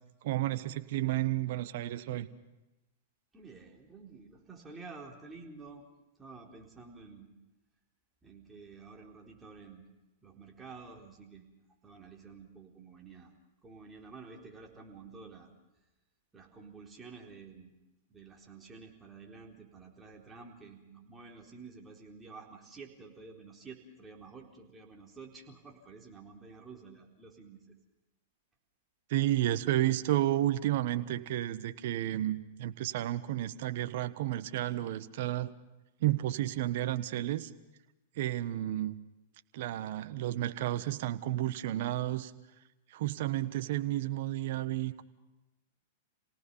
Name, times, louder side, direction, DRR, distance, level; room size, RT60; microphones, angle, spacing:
voice 1, 0.2-2.3 29.1-35.5 36.0-37.5 38.2-38.9 39.5-42.3 42.9-45.0, right 14 dB, 60° right, 12 dB, 1.3 m, -31 dB
voice 2, 3.3-5.8 6.2-7.3 8.2-9.9 10.2-13.3 13.6-15.5 16.3-17.7 18.1-27.8, right 4 dB, 15° right, 0 dB, 4.2 m, -50 dB
29.5 x 18.5 x 5.7 m, 1.0 s
hypercardioid pair, 110°, 0 cm